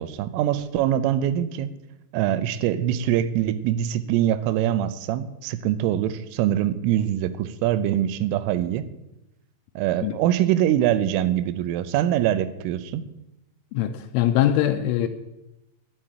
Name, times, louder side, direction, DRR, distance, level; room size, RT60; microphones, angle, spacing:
voice 1, 0.0-1.8 2.1-8.9 9.8-13.1, right 11 dB, 90° right, 14 dB, 3.3 m, -23 dB
voice 2, 13.7-15.1, left 12 dB, 85° left, 6 dB, 3.2 m, -22 dB
11.0 x 7.7 x 8.7 m, 0.94 s
omnidirectional pair, 5.6 m